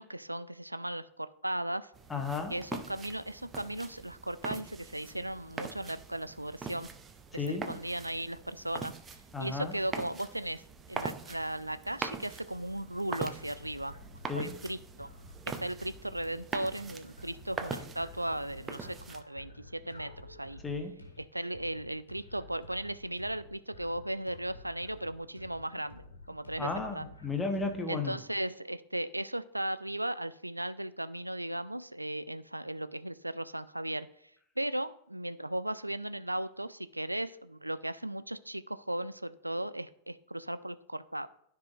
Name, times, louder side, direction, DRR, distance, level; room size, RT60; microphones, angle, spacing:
voice 1, 0.0-1.9 2.5-6.9 7.3-10.6 10.9-13.9 14.3-15.1 15.5-20.6 21.2-27.1 27.9-34.3 34.6-41.3, right 1 dB, 85° right, 0.3 m, -37 dB
sound 1, 1.9-19.2, right 5 dB, 20° right, 0.6 m, -43 dB
voice 2, 2.1-2.5 7.3-7.7 9.3-9.7 14.3-14.6 20.6-21.0 26.6-28.2, left 4 dB, 10° left, 1.0 m, -34 dB
sound 2, 13.4-27.8, left 2 dB, 80° left, 1.3 m, -52 dB
13.0 x 4.8 x 2.5 m
figure-of-eight pair, 90°, 0 cm